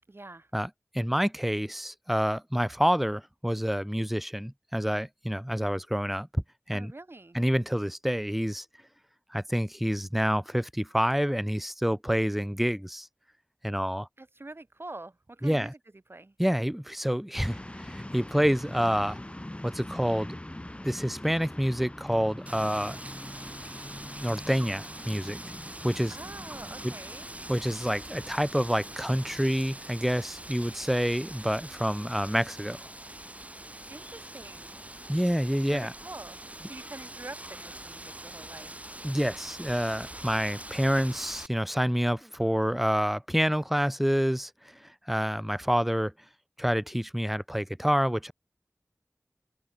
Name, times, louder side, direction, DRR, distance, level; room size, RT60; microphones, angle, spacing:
voice 1, 0.1-0.5 6.7-7.4 14.2-15.8 16.1-16.4 26.1-27.3 33.9-34.8 35.7-38.7, right 2 dB, 45° right, 1.9 m, -45 dB
voice 2, 0.9-6.9 7.3-8.6 9.3-13.1 13.6-14.1 15.4-15.7 16.4-19.2 19.6-20.4 20.8-23.0 24.2-25.4 25.8-26.1 26.8-26.9 27.5-32.8 35.1-35.9 39.0-46.1 46.6-48.3, equal, 5° right, 0.8 m, -28 dB
sound 1, 17.3-29.4, left 1 dB, 20° left, 1.6 m, -43 dB
Wind, 22.5-41.5, right 1 dB, 25° right, 4.4 m, -44 dB
open air
wide cardioid pair, 55°, 5 cm